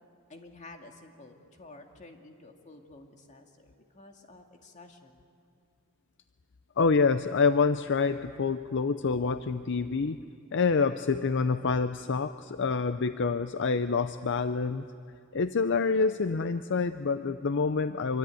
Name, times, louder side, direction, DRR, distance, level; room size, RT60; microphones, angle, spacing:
voice 1, 0.3-5.2, left 2 dB, 35° left, 3 dB, 2.3 m, -51 dB
voice 2, 6.8-10.2 10.5-14.8 15.3-18.2, left 4 dB, 60° left, 11 dB, 0.6 m, -27 dB
25.5 x 24.0 x 9.1 m, 2.5 s
head